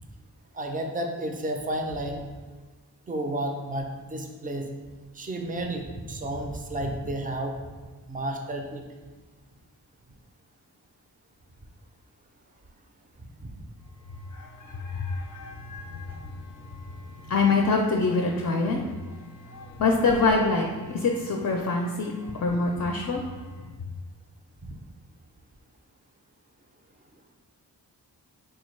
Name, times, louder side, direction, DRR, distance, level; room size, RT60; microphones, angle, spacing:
voice 1, 0.5-2.2 3.1-4.7 5.2-7.5 8.1-8.8 13.4-13.6, right 1 dB, 20° right, 3 dB, 0.4 m, -31 dB
voice 2, 14.7-16.1 17.3-18.8 19.5-22.1 22.4-23.2, left 3 dB, 45° left, 1 dB, 0.4 m, -25 dB
3.5 x 2.2 x 3.1 m, 1.4 s
cardioid pair, 50°, 41 cm